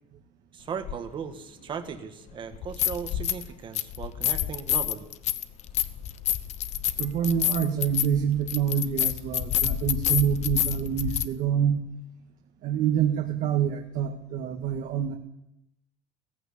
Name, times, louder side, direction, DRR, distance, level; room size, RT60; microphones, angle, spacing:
voice 1, 0.5-5.1, right 7 dB, 25° right, 8 dB, 1.6 m, -37 dB
sound 1, 0.8-1.0 2.5-3.5 3.7-11.3, left 11 dB, 40° left, 1.0 m, -28 dB
voice 2, 7.0-11.8 12.6-15.2, right 9 dB, 50° right, 3 dB, 1.8 m, -26 dB
17.5 x 15.5 x 10.0 m, 0.82 s
cardioid pair, 180°, 18 cm